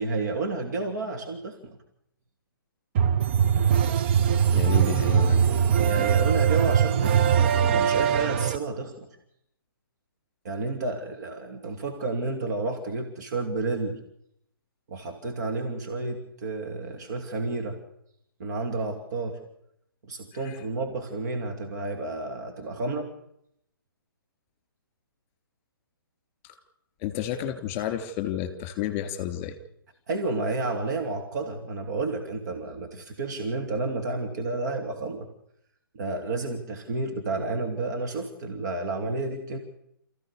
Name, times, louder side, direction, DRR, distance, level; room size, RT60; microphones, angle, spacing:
voice 1, 0.0-1.8 5.8-7.3 7.7-9.1 10.4-14.0 14.9-17.8 18.4-19.4 20.0-23.1 30.1-35.3 35.9-39.6, right 3 dB, 50° right, 3 dB, 2.7 m, -31 dB
sound 1, 2.9-8.6, right 8 dB, 30° right, 0.8 m, -21 dB
voice 2, 4.5-5.4 20.3-20.6 26.4-26.5 27.0-29.6, left 11 dB, 25° left, 7 dB, 3.2 m, -31 dB
28.5 x 15.0 x 6.8 m, 0.78 s
figure-of-eight pair, 130°, 12 cm